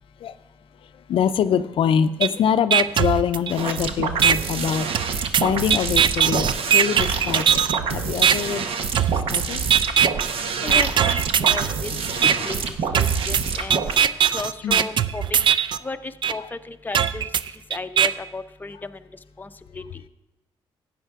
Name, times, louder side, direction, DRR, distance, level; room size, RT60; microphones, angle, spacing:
voice 1, 0.8-7.6 7.9-8.7 9.1-9.6 12.2-12.3 14.1-14.2 14.6-14.8 16.4-16.5, left 8 dB, 70° left, 11 dB, 0.4 m, -24 dB
sound 1, 2.2-2.3 2.7-3.7 4.2-4.3 4.9-7.8 8.2-8.3 8.9-9.4 9.7-10.3 10.7-11.7 12.2-12.3 12.9-15.8 16.2-16.3 16.9-18.1, right 8 dB, 55° right, 0.4 m, -19 dB
sound 2, 3.5-14.0, right 5 dB, 75° right, 0.9 m, -27 dB
voice 2, 10.6-11.9 12.5-13.8 14.3-15.4 15.8-17.3 17.7-19.0 19.4-19.8, left 3 dB, 20° left, 8 dB, 0.6 m, -34 dB
13.0 x 8.9 x 3.6 m, 1.0 s
cardioid pair, 75°, 10 cm